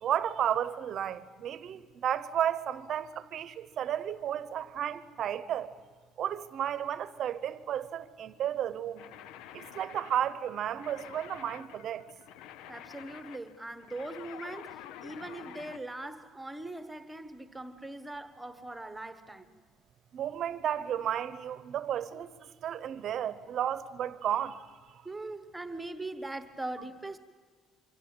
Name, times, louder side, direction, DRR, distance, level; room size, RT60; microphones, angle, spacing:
voice 1, 0.0-5.7 6.2-9.0 9.5-12.0 20.1-22.3 22.6-25.0, right 10 dB, 40° right, 0.9 m, -33 dB
sound 1, 9.0-15.8, left 11 dB, 80° left, 0.7 m, -48 dB
voice 2, 12.7-19.5 25.0-27.2, right 2 dB, 5° right, 1.1 m, -41 dB
25.5 x 25.0 x 8.8 m
cardioid pair, 180°, 0 cm